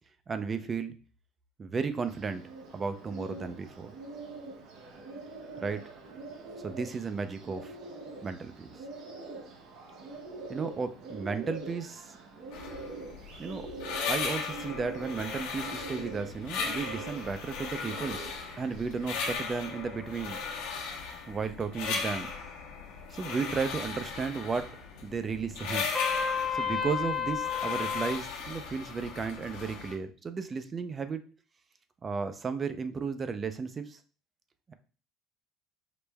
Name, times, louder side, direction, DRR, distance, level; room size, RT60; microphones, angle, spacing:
voice 1, 0.3-0.9 1.6-2.4 2.7-3.9 5.6-5.9 6.6-7.8 8.2-8.7 10.5-12.1 13.4-13.7 14.1-18.3 18.6-20.4 21.3-22.3 23.1-24.8 25.0-25.9 26.5-31.2 32.0-34.0 34.7-34.8, right 5 dB, 30° right, 10 dB, 0.5 m, -34 dB
Bird, 2.1-19.4, right 3 dB, 65° right, 0.9 m, -44 dB
sound 1, 12.5-29.9, left 5 dB, 80° left, 1.0 m, -37 dB
Trumpet, 25.9-28.2, left 7 dB, 10° left, 0.6 m, -31 dB
5.0 x 2.0 x 3.4 m, 0.37 s
supercardioid pair, 100°, 0 cm